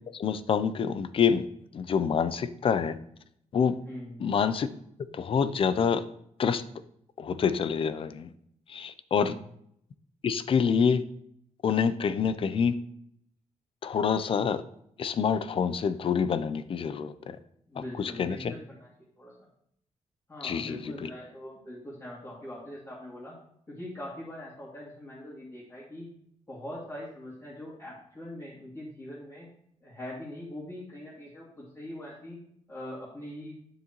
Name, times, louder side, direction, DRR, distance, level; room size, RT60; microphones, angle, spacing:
voice 1, 0.1-1.5 1.7-3.0 3.5-3.8 4.2-4.7 5.1-6.0 6.4-6.6 7.2-8.3 8.7-9.4 10.2-11.0 11.6-12.8 13.8-14.6 15.0-17.4 17.8-18.5 20.4-21.1, left 6 dB, 45° left, 13 dB, 0.5 m, -27 dB
voice 2, 17.7-18.9 19.2-19.3 20.3-23.3 23.7-26.1 26.5-29.5 29.8-32.4 32.7-33.5, left 1 dB, 20° left, -8 dB, 2.5 m, -42 dB
10.0 x 6.6 x 3.0 m, 0.72 s
wide cardioid pair, 150°, 13 cm